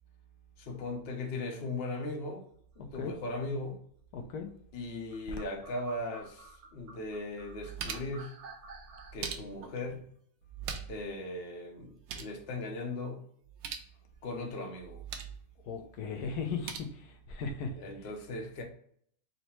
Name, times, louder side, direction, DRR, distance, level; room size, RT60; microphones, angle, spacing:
voice 1, 0.6-2.4 2.8-3.8 4.7-8.3 9.1-10.1 10.9-13.2 14.2-15.0 17.8-18.6, left 2 dB, 50° left, 0.8 m, -38 dB
voice 2, 2.8-3.2 4.1-4.5 15.6-18.1, left 4 dB, 85° left, 1.2 m, -38 dB
sound 1, 5.1-9.1, right 4 dB, 60° right, 0.8 m, -51 dB
sound 2, 6.8-6.9 7.3-8.2 8.9-9.8 10.4-11.1 11.4-11.5 11.8-12.4 13.4-13.9 14.8-15.4 16.4-16.8, right 7 dB, 80° right, 1.1 m, -42 dB
4.0 x 2.2 x 4.2 m
omnidirectional pair, 1.6 m